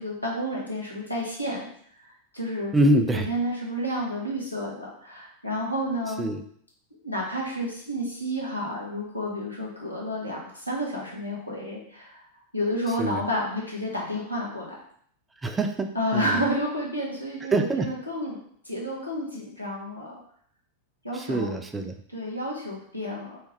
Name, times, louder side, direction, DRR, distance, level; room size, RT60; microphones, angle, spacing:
voice 1, 0.0-1.7 2.0-2.7 3.1-6.3 7.0-12.2 12.5-14.7 15.9-18.4 18.6-20.2 21.0-21.5 22.1-23.4, equal, 85° left, -3 dB, 1.2 m, -30 dB
voice 2, 2.7-3.3 6.2-6.4 13.0-13.2 15.4-16.4 17.5-17.9 21.1-21.9, right 1 dB, 15° right, 6 dB, 0.5 m, -24 dB
4.2 x 3.4 x 3.2 m, 0.62 s
figure-of-eight pair, 90°, 0 cm